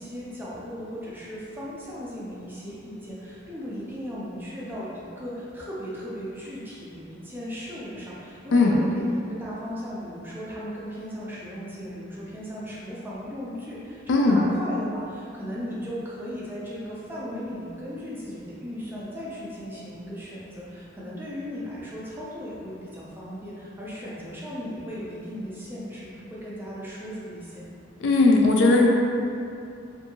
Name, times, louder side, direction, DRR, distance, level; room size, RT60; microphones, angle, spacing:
voice 1, 0.0-27.7, equal, 10° right, -7 dB, 0.4 m, -37 dB
voice 2, 14.1-14.4 28.0-28.9, left 3 dB, 75° left, 0 dB, 0.4 m, -18 dB
2.7 x 2.5 x 2.7 m, 2.6 s
head